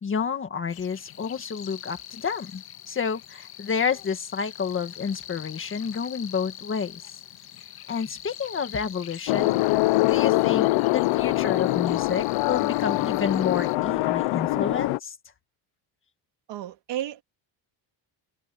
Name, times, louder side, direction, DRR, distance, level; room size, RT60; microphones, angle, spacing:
voice 1, 0.0-7.0 7.9-9.6 10.0-15.2, left 6 dB, 25° left, 1.9 m, -30 dB
sound 1, 0.7-13.7, left 11 dB, 50° left, 2.3 m, -44 dB
sound 2, 9.3-15.0, left 20 dB, 80° left, 0.7 m, -23 dB
voice 2, 16.5-17.2, right 12 dB, 60° right, 2.8 m, -32 dB
cardioid pair, 175°, 47 cm